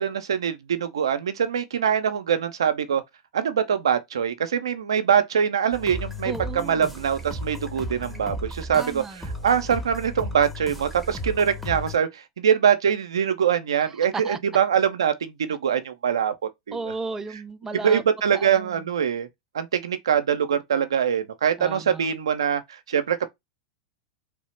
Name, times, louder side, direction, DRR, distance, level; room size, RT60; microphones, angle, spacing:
voice 1, 0.0-3.0 3.3-9.0 9.4-16.3 16.7-16.8 17.8-19.3 19.5-23.3, right 8 dB, 80° right, 0.4 m, -23 dB
sound 1, 5.7-12.0, left 1 dB, 5° left, 0.7 m, -35 dB
voice 2, 6.2-6.9 8.7-9.2 13.8-14.4 16.7-18.0 18.3-18.9 21.6-22.1, right 4 dB, 15° right, 0.3 m, -34 dB
3.1 x 2.0 x 3.1 m
hypercardioid pair, 100°, 3 cm